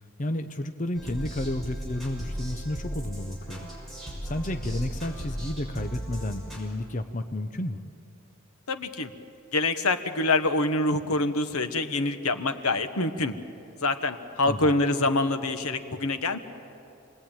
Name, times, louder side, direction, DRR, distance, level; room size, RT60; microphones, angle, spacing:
voice 1, 0.2-3.7 4.2-7.8 14.5-14.6, left 1 dB, 35° left, 7 dB, 0.8 m, -32 dB
sound 1, 0.9-6.6, equal, ahead, 6.1 m, -36 dB
voice 2, 8.7-9.1 9.5-13.3 13.8-16.4, left 2 dB, 90° left, 8 dB, 1.3 m, -25 dB
28.5 x 19.5 x 9.0 m, 2.7 s
head